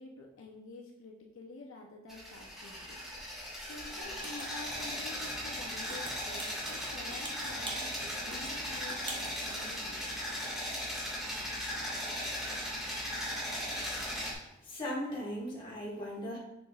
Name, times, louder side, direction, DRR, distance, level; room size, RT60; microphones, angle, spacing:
voice 1, 0.0-3.0 3.7-10.3, left 2 dB, 70° left, 0 dB, 0.7 m, -49 dB
sound 1, 2.1-14.3, equal, ahead, 1.6 m, -38 dB
sound 2, 4.2-5.0 5.3-9.9 10.2-10.4, right 2 dB, 20° right, 0.9 m, -45 dB
voice 2, 14.6-16.4, equal, 20° left, -5 dB, 1.7 m, -37 dB
6.9 x 6.3 x 2.4 m, 0.94 s
head